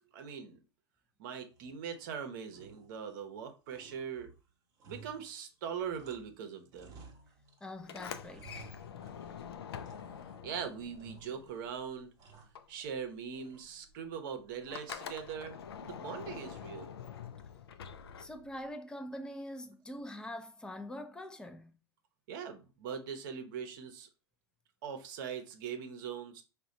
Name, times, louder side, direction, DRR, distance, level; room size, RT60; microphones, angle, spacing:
voice 1, 0.1-0.6 1.2-4.3 4.9-7.0 10.4-12.1 12.7-16.9 22.3-24.1 24.8-26.4, right 7 dB, 45° right, 0.8 m, -41 dB
sound 1, 1.5-2.1 2.5-3.4 3.7-6.4 6.7-7.7 8.0-9.4 9.8-10.5 11.0-11.6 11.9-13.0 13.3-14.0 14.6-15.0 16.4-17.0, right 5 dB, 25° right, 1.1 m, -57 dB
voice 2, 7.6-8.7 18.2-21.8, left 1 dB, 5° left, 0.5 m, -44 dB
Sliding door, 7.8-12.1 12.3-18.7, left 8 dB, 60° left, 0.4 m, -46 dB
5.0 x 2.3 x 3.8 m
figure-of-eight pair, 95°, 14 cm